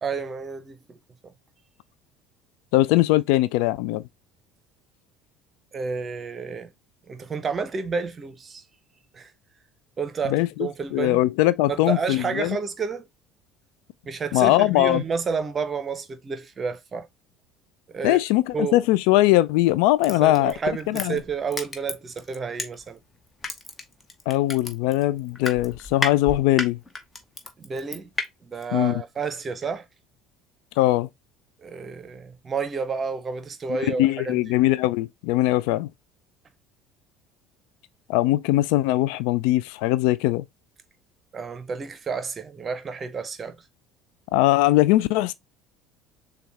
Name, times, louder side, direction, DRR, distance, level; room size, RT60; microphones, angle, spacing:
voice 1, 0.0-1.0 1.2-1.3 5.7-6.7 7.1-8.6 9.1-9.3 10.0-11.2 11.7-13.0 14.0-17.1 17.9-18.2 18.5-18.8 20.1-23.0 27.6-28.1 28.4-29.9 31.6-34.5 41.3-43.6, right 5 dB, 30° right, 0.8 m, -30 dB
voice 2, 2.7-4.0 10.3-12.6 14.3-15.0 18.0-20.5 20.9-21.2 24.3-26.8 28.7-29.0 30.8-31.1 33.7-35.9 38.1-40.4 44.3-45.3, left 16 dB, 60° left, 0.3 m, -21 dB
Crushing, 20.0-23.0 23.4-28.3 28.6-28.7, left 3 dB, 20° left, 0.9 m, -32 dB
6.8 x 2.3 x 3.3 m
figure-of-eight pair, 60°, 0 cm